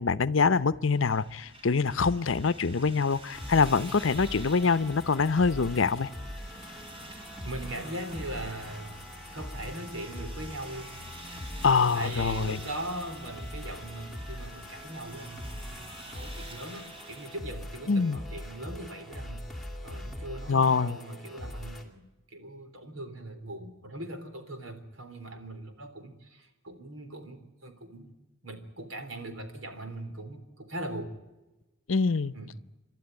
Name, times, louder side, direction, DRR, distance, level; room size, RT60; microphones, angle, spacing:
voice 1, 0.0-6.1 11.6-12.6 17.9-18.2 20.5-21.0 31.9-32.3, left 4 dB, 75° left, 16 dB, 0.7 m, -25 dB
sound 1, 0.9-17.4, right 1 dB, 30° right, 3.1 m, -48 dB
sound 2, 3.3-21.8, left 1 dB, ahead, 2.6 m, -42 dB
voice 2, 7.5-9.0 9.3-10.9 11.9-19.4 19.8-28.1 28.4-31.1 32.3-32.5, right 1 dB, 85° right, 7 dB, 3.5 m, -40 dB
28.5 x 12.0 x 9.6 m, 1.1 s
head